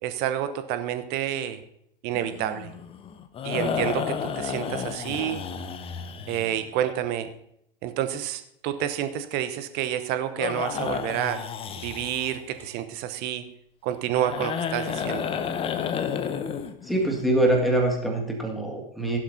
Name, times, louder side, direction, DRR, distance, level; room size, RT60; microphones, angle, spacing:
voice 1, 0.0-1.6 2.0-2.7 3.4-5.4 6.3-7.3 7.8-11.4 11.8-13.4 13.8-15.3, right 11 dB, 35° right, 10 dB, 1.0 m, -29 dB
sound 1, 2.1-6.9 10.4-12.6 14.1-17.2, left 7 dB, 20° left, 0.7 m, -31 dB
voice 2, 16.8-19.2, right 1 dB, ahead, 0 dB, 2.0 m, -24 dB
15.5 x 11.5 x 2.8 m, 0.74 s
figure-of-eight pair, 90°, 29 cm